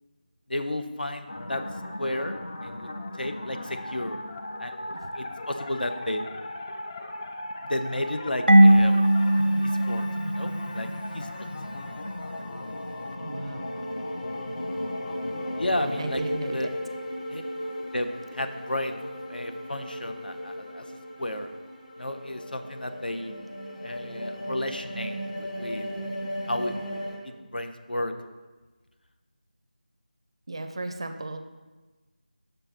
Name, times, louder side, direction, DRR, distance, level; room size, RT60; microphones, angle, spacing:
voice 1, 0.5-1.6 2.0-2.9 3.2-4.2 4.6-4.8 5.1-6.2 7.6-9.0 9.6-10.9 11.1-11.5 15.6-16.7 17.3-17.4 17.9-19.0 19.3-20.8 21.2-21.5 22.0-23.3 23.8-25.9 26.5-26.7 27.2-28.1, left 1 dB, 75° left, 7 dB, 0.6 m, -32 dB
sound 1, 1.3-16.0, left 1 dB, 30° left, 0.4 m, -38 dB
Marimba xylophone / Wood, 8.5-11.2, right 1 dB, 85° right, 0.5 m, -19 dB
sound 2, 9.0-27.2, equal, 55° left, 1.5 m, -37 dB
voice 2, 13.2-13.7 16.0-16.7 30.5-31.4, right 2 dB, 35° right, 7 dB, 0.4 m, -35 dB
6.5 x 5.9 x 3.7 m, 1.3 s
figure-of-eight pair, 165°, 5 cm